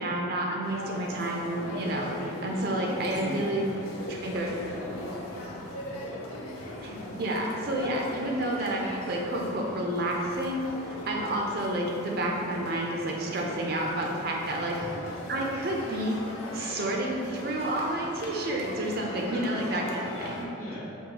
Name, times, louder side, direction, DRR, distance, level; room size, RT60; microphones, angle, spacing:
voice 1, 0.0-3.7 4.1-4.6 6.8-14.8 15.3-16.2 16.5-20.5, right 1 dB, 50° right, -1 dB, 0.4 m, -30 dB
sound 1, 0.6-20.5, left 1 dB, 90° left, 0.5 m, -39 dB
voice 2, 2.8-3.7 4.2-4.4 4.6-5.5 6.6-6.8 14.7-14.8 20.3-21.0, equal, 40° left, -8 dB, 1.0 m, -39 dB
5.2 x 2.3 x 2.8 m, 2.5 s
head